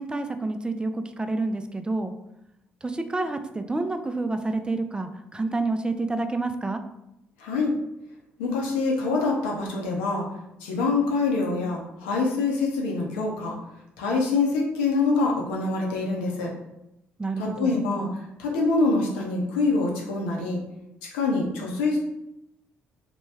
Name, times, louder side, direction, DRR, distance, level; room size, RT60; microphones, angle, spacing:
voice 1, 0.0-2.1 2.8-6.8 17.2-17.8, right 2 dB, 15° right, 8 dB, 0.4 m, -28 dB
voice 2, 7.4-7.7 8.4-10.3 10.6-13.5 14.0-16.5 17.4-18.1 18.4-20.6 21.1-22.0, left 3 dB, 80° left, -1 dB, 0.7 m, -25 dB
3.0 x 2.2 x 3.3 m, 0.85 s
hypercardioid pair, 50°, 5 cm